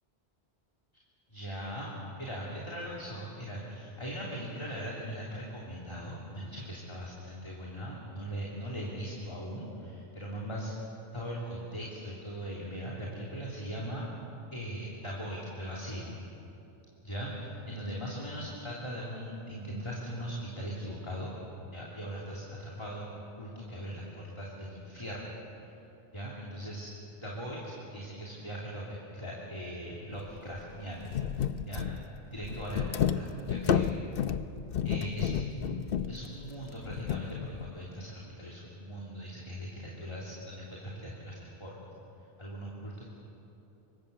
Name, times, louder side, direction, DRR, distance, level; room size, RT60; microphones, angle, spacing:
voice 1, 1.3-10.7 11.1-14.1 14.5-16.1 17.0-21.3 21.7-25.3 26.1-26.9 27.2-31.1 31.6-32.0 32.3-33.8 34.8-41.9 42.4-43.0, equal, 25° left, -4 dB, 3.1 m, -40 dB
sound 1, 30.1-30.3 30.6-30.7 31.0-37.7, left 8 dB, 65° left, 0.9 m, -31 dB
26.0 x 24.0 x 6.8 m, 2.9 s
omnidirectional pair, 1.1 m